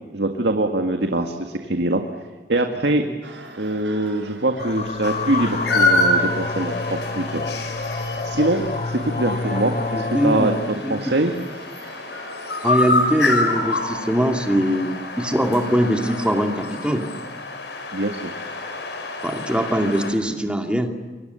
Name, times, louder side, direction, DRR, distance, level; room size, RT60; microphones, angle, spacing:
voice 1, 0.1-2.0 2.5-3.0 3.6-7.4 8.2-11.3 17.9-18.3, right 2 dB, 75° right, 4 dB, 1.9 m, -23 dB
sound 1, 3.2-13.8, right 2 dB, 90° right, 5.1 m, -41 dB
sound 2, 4.6-10.8, left 3 dB, 35° left, 0.8 m, -28 dB
sound 3, 5.0-20.1, left 2 dB, 80° left, 5.2 m, -27 dB
voice 2, 9.6-10.5 10.8-11.0 12.6-17.0 19.2-20.9, equal, 5° right, 3 dB, 2.5 m, -22 dB
28.5 x 25.0 x 7.0 m, 1.4 s
head